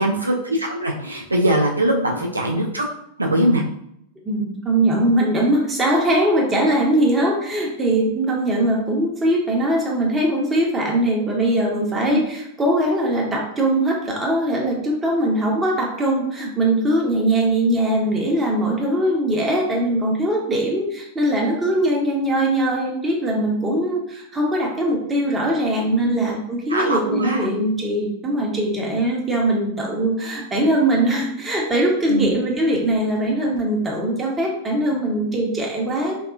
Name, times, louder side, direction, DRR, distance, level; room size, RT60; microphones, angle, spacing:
voice 1, 0.0-2.9 3.2-3.6 25.9-26.3 26.7-27.5 32.1-32.3, right 1 dB, 80° right, 0 dB, 0.4 m, -21 dB
voice 2, 4.2-36.2, right 1 dB, 15° right, -2 dB, 1.0 m, -21 dB
4.0 x 2.9 x 2.4 m, 0.75 s
figure-of-eight pair, 90°, 0 cm